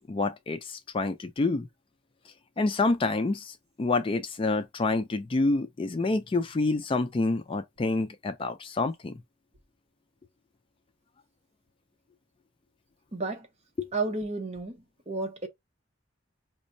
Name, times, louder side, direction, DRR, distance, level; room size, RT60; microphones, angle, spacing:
voice 1, 0.1-1.7 2.6-9.2 13.8-13.9, left 3 dB, 25° left, 0.3 m, -28 dB
voice 2, 13.1-13.5 13.9-15.5, right 3 dB, 35° right, 0.8 m, -32 dB
5.0 x 2.2 x 2.6 m
head